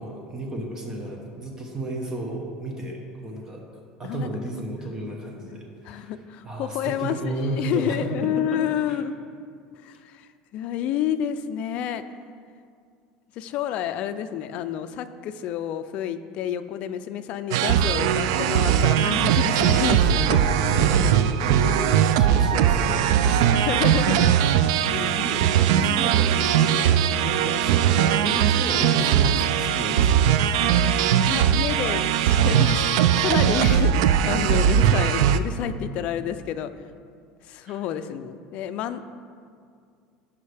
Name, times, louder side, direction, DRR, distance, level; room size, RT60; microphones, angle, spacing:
voice 1, 0.0-3.6 4.0-6.1 6.4-8.6 8.9-9.0 19.5-21.9 22.2-23.4 24.7-30.3 37.6-37.8, right 2 dB, 20° right, 0 dB, 1.1 m, -32 dB
voice 2, 5.8-9.1 9.8-12.0 13.4-20.0 20.3-20.4 23.5-24.4 24.9-25.2 31.2-36.7 37.5-39.1, left 10 dB, 50° left, 10 dB, 0.4 m, -29 dB
sound 1, 17.5-35.4, right 9 dB, 85° right, 0.3 m, -20 dB
14.0 x 5.5 x 3.4 m, 2.2 s
cardioid pair, 150°, 3 cm